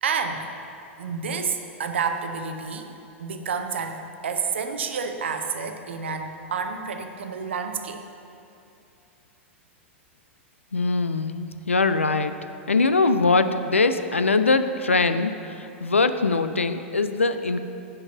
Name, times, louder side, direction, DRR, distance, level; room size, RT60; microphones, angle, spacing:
voice 1, 0.0-0.5 1.0-2.9 3.2-8.0, right 5 dB, 65° right, 6 dB, 0.6 m, -29 dB
voice 2, 10.7-12.4 12.7-17.6, left 3 dB, 80° left, 10 dB, 0.3 m, -22 dB
6.0 x 5.4 x 6.9 m, 2.7 s
figure-of-eight pair, 95°, 7 cm